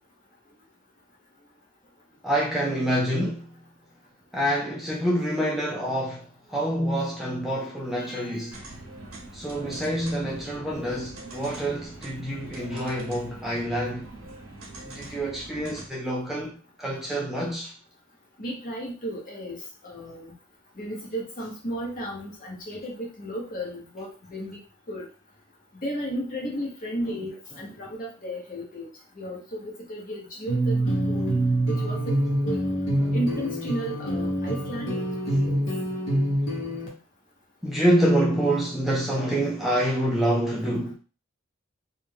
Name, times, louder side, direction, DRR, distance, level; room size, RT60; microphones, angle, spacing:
voice 1, 2.2-3.5 4.3-8.6 9.3-14.1 14.8-17.7 33.0-33.2 37.6-40.9, right 1 dB, ahead, 0.4 m, -27 dB
sound 1, 8.5-15.9, right 2 dB, 85° right, 0.7 m, -43 dB
voice 2, 18.4-19.6 19.8-20.3 20.8-24.6 24.9-25.0 25.8-27.3 27.6-28.9 29.2-31.4 31.7-32.1 32.4-32.6 33.1-35.6, right 1 dB, 40° left, 0.9 m, -34 dB
sound 2, 30.5-36.9, right 1 dB, 65° left, 1.0 m, -26 dB
2.4 x 2.2 x 3.2 m
head